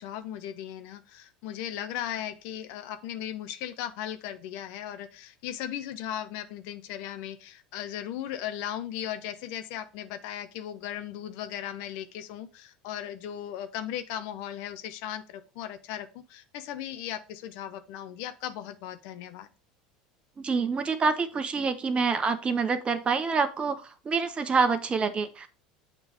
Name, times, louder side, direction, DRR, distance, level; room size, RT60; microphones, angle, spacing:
voice 1, 0.0-19.5, left 11 dB, 65° left, 10 dB, 0.7 m, -37 dB
voice 2, 20.4-25.5, right 4 dB, 30° right, 10 dB, 0.9 m, -27 dB
7.4 x 3.2 x 5.0 m, 0.33 s
hypercardioid pair, 85°, 4 cm